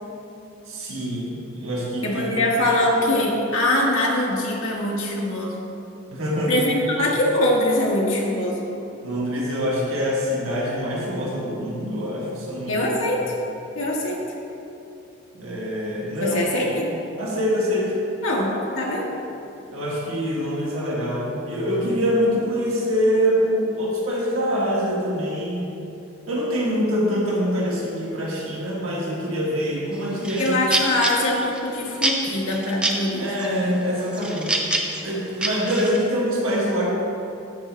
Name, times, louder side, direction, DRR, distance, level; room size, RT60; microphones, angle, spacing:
voice 1, 0.7-2.2 6.1-6.5 9.0-12.9 15.3-16.4 16.8-17.9 19.7-25.7 26.3-30.6 33.2-34.6 35.0-36.9, equal, 85° right, -5 dB, 1.6 m, -25 dB
voice 2, 2.0-5.6 6.5-8.7 12.7-13.2 13.7-14.2 16.2-16.9 18.2-19.1 30.4-33.6, left 1 dB, 75° left, -3 dB, 1.5 m, -23 dB
sound 1, 29.9-31.7 32.0-33.0 33.4-33.8 34.1-36.0, right 2 dB, 5° right, 0.5 m, -26 dB
13.0 x 5.0 x 3.2 m, 2.8 s
head